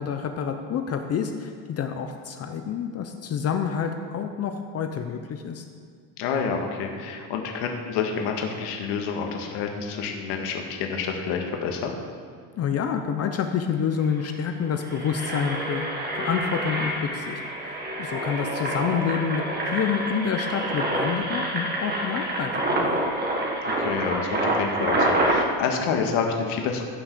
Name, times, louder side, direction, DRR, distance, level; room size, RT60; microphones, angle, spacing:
voice 1, 0.0-5.6 12.6-15.9 16.1-23.0, left 7 dB, 40° left, 6 dB, 0.7 m, -28 dB
voice 2, 6.2-12.0 23.8-26.8, left 6 dB, 90° left, 2 dB, 1.7 m, -28 dB
Engine, 13.7-13.8 14.0-14.3 14.7-25.4, right 1 dB, 25° right, 1.3 m, -27 dB
15.0 x 6.2 x 6.8 m, 2.1 s
cardioid pair, 160°, 40 cm